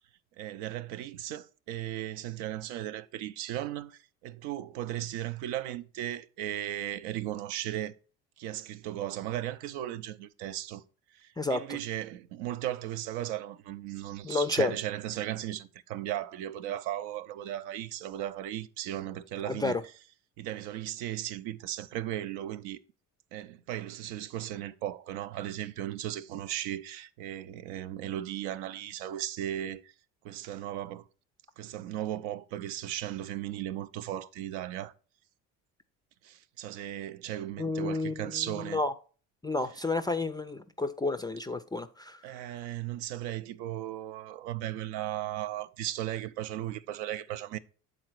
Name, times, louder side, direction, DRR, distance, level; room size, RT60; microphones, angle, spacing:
voice 1, 0.4-7.9 8.4-10.8 11.1-19.8 20.4-22.8 23.3-29.9 30.2-31.1 31.6-34.9 36.2-38.8 42.2-47.6, right 12 dB, 70° right, 0.6 m, -36 dB
voice 2, 14.2-14.7 19.5-19.8 37.6-38.3 38.7-38.9 39.4-42.2, left 3 dB, 10° left, 0.3 m, -30 dB
7.7 x 4.0 x 4.5 m
hypercardioid pair, 65°, 43 cm